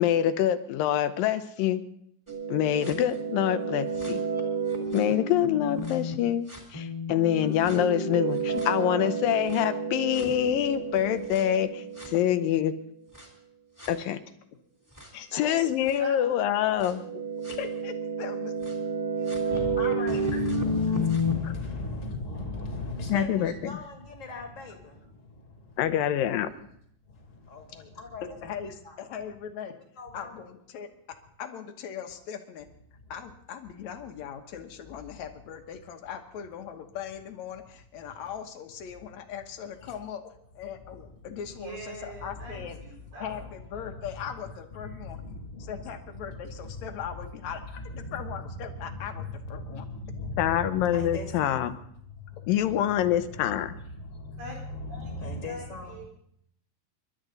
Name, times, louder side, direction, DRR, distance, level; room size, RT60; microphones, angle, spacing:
voice 1, 0.0-1.8 2.5-4.2 4.9-6.5 6.7-12.7 13.9-14.2 15.3-17.0 23.1-23.5 25.8-26.5 50.4-51.7 52.5-53.7, left 11 dB, 80° left, 11 dB, 2.6 m, -25 dB
sound 1, 2.3-6.1 6.5-12.6 13.1-13.2 13.8-13.9 15.0-15.1 15.9-16.0 16.8-21.3, right 2 dB, 5° right, 2.7 m, -31 dB
voice 2, 16.0-16.9 19.1-20.2 41.5-43.4 43.7-43.9 54.4-54.5 54.9-56.1, right 1 dB, 75° right, -3 dB, 6.1 m, -44 dB
voice 3, 17.5-18.5 21.4-21.5 28.2-29.8 30.1-32.7 33.1-40.2 40.6-42.8 43.2-45.2 45.6-49.9, left 8 dB, 65° left, 6 dB, 2.3 m, -40 dB
voice 4, 19.5-24.7 28.1-28.2 30.0-30.3 50.2-51.6 54.5-55.9, left 2 dB, 25° left, 3 dB, 2.1 m, -36 dB
27.5 x 12.0 x 4.0 m, 0.68 s
omnidirectional pair, 4.0 m